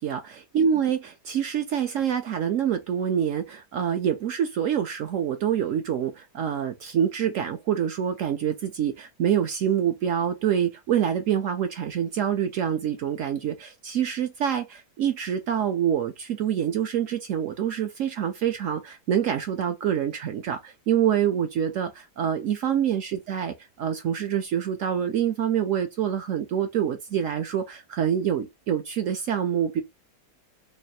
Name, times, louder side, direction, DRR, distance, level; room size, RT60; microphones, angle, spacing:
voice 1, 0.0-29.8, right 9 dB, 70° right, 0.8 m, -26 dB
3.2 x 2.5 x 4.0 m
omnidirectional pair, 1.8 m